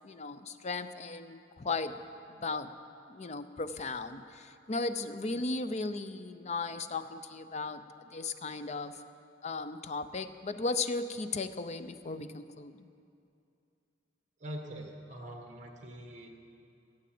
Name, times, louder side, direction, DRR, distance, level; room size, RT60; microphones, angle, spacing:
voice 1, 0.0-2.0 2.3-2.7 3.1-7.8 8.1-9.0 9.4-12.8, left 3 dB, 40° left, 11 dB, 0.6 m, -36 dB
voice 2, 14.4-16.3, right 1 dB, 45° right, 3 dB, 1.5 m, -44 dB
15.5 x 8.8 x 7.7 m, 2.5 s
head